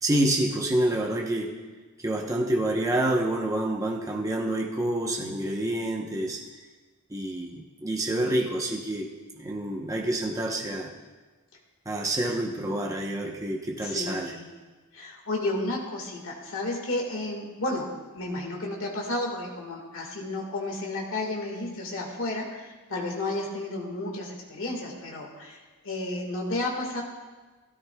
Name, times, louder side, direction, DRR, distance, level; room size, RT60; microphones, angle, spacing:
voice 1, 0.0-1.6 2.0-6.4 7.1-9.1 9.4-10.9 11.9-14.3, right 1 dB, 15° right, -1 dB, 0.8 m, -27 dB
voice 2, 13.8-14.4 14.9-17.9 18.1-25.6 25.8-27.0, left 2 dB, 65° left, 0 dB, 1.7 m, -32 dB
16.0 x 13.0 x 2.3 m, 1.3 s
head